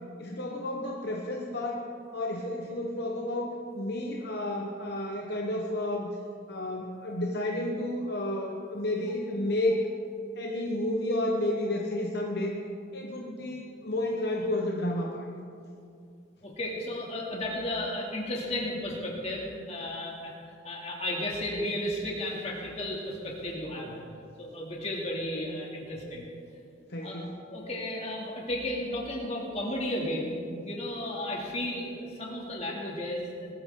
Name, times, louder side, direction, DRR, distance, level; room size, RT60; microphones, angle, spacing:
voice 1, 0.2-1.8 2.1-6.1 6.5-9.8 10.4-12.6 12.9-15.3 26.9-27.3, left 1 dB, 55° left, -1 dB, 1.1 m, -31 dB
voice 2, 16.4-20.3 20.6-24.0 24.4-26.3 27.0-27.2 27.5-30.3 30.6-33.5, left 1 dB, 35° left, -2 dB, 2.7 m, -34 dB
20.5 x 13.0 x 3.8 m, 2.4 s
head